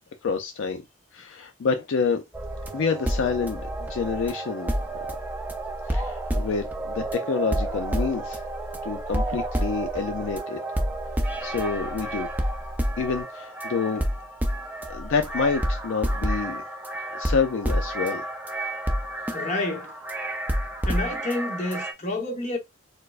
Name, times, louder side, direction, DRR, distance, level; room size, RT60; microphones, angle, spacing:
voice 1, 0.2-0.8 1.1-2.2 2.7-4.7 5.9-8.4 8.8-10.6 11.4-12.3 13.0-14.0 14.9-16.6 17.1-18.2, left 5 dB, 65° left, 0.4 m, -28 dB
sound 1, 2.3-21.9, right 1 dB, 10° right, 0.4 m, -29 dB
voice 2, 19.3-19.9 20.8-22.6, left 2 dB, 35° left, 0.9 m, -29 dB
4.4 x 2.0 x 2.4 m
head